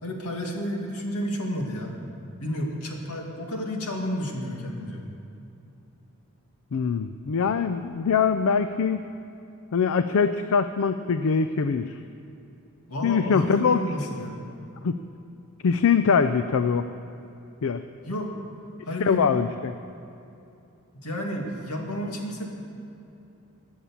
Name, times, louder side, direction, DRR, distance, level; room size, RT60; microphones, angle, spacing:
voice 1, 0.0-2.0 2.4-5.0 12.9-14.4 18.1-18.4 18.8-19.3 20.9-22.5, equal, 80° left, 1 dB, 2.2 m, -31 dB
voice 2, 6.7-9.0 9.7-11.9 13.0-13.8 14.8-15.0 15.6-16.9 17.6-17.8 19.0-19.7, left 6 dB, 65° left, 10 dB, 0.4 m, -23 dB
20.5 x 7.3 x 7.2 m, 2.7 s
head